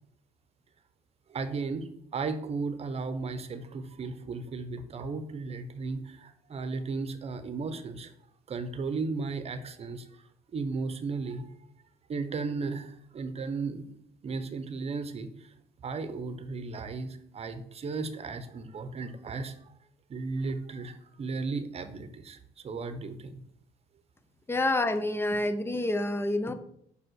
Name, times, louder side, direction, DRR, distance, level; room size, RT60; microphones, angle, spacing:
voice 1, 1.3-8.1 8.5-10.2 10.5-11.5 12.1-13.8 14.2-15.3 15.8-19.6 20.1-22.4 22.6-23.4, right 4 dB, 35° right, 11 dB, 1.0 m, -35 dB
voice 2, 24.5-26.5, left 2 dB, 15° left, 10 dB, 0.8 m, -28 dB
5.4 x 5.0 x 6.4 m, 0.69 s
cardioid pair, 110°, 17 cm